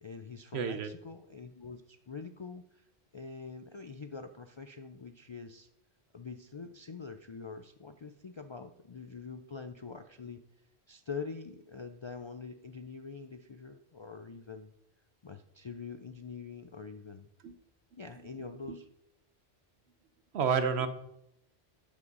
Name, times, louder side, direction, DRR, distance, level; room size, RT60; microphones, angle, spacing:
voice 1, 0.0-2.8 3.1-5.7 6.1-10.4 10.9-14.7 15.2-17.3 18.0-18.9, left 5 dB, 50° left, 8 dB, 0.3 m, -44 dB
voice 2, 0.5-0.9 17.4-17.5 20.3-20.9, right 6 dB, 75° right, 11 dB, 1.0 m, -29 dB
12.5 x 5.1 x 5.3 m, 0.80 s
omnidirectional pair, 1.1 m